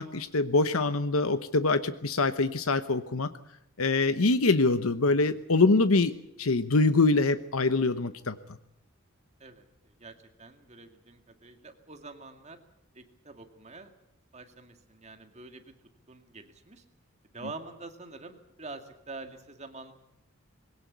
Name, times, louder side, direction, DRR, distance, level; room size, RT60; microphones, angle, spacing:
voice 1, 0.0-3.3 3.8-6.1 6.4-8.4, left 3 dB, 80° left, 11 dB, 1.0 m, -24 dB
voice 2, 9.4-12.6 12.9-13.9 14.3-15.6 16.1-16.8 17.3-19.9, right 3 dB, 30° right, 6 dB, 2.2 m, -46 dB
21.5 x 17.5 x 8.1 m, 0.84 s
head